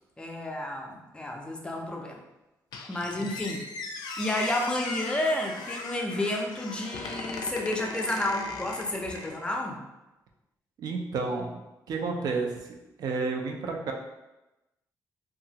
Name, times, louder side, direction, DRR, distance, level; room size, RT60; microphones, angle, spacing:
voice 1, 0.2-2.2 2.9-3.6 4.2-9.8, left 1 dB, 15° left, 1 dB, 0.4 m, -31 dB
Squeak, 2.7-9.6, left 3 dB, 80° left, 0.4 m, -38 dB
voice 2, 10.8-11.6 11.9-12.6 13.0-13.9, right 4 dB, 70° right, 2 dB, 0.4 m, -30 dB
2.9 x 2.4 x 2.7 m, 0.99 s
cardioid pair, 145°, 7 cm